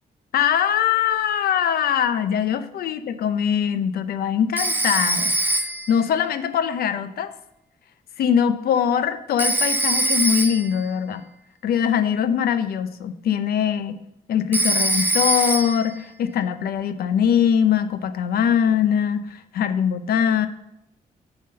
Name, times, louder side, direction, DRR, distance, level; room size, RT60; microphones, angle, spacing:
voice 1, 0.3-7.3 8.2-11.2 11.6-14.0 14.3-20.5, left 8 dB, 85° left, 11 dB, 0.6 m, -22 dB
Telephone, 4.6-6.0 9.4-10.8 14.5-15.9, right 2 dB, 10° right, 0.4 m, -23 dB
9.0 x 3.6 x 6.6 m, 0.85 s
cardioid pair, 130°, 15 cm